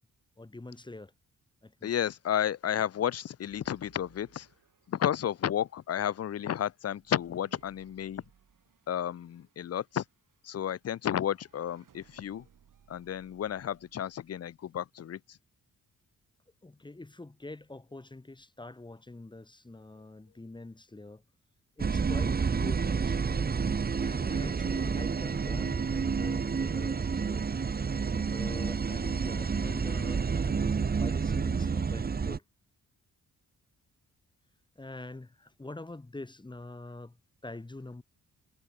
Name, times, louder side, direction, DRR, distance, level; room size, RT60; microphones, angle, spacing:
voice 1, 0.4-1.1 1.6-1.9 16.6-21.2 21.8-23.5 24.0-27.5 28.1-32.4 34.7-37.2 37.4-38.0, left 2 dB, 15° left, 1.5 m, -45 dB
voice 2, 1.8-4.5 4.9-8.2 8.9-10.0 10.4-12.4 12.9-15.2, left 10 dB, 45° left, 0.6 m, -32 dB
sound 1, 3.4-14.7, right 8 dB, 70° right, 5.8 m, -65 dB
sound 2, 21.8-32.4, right 5 dB, 30° right, 0.8 m, -29 dB
wide cardioid pair, 120°, 33 cm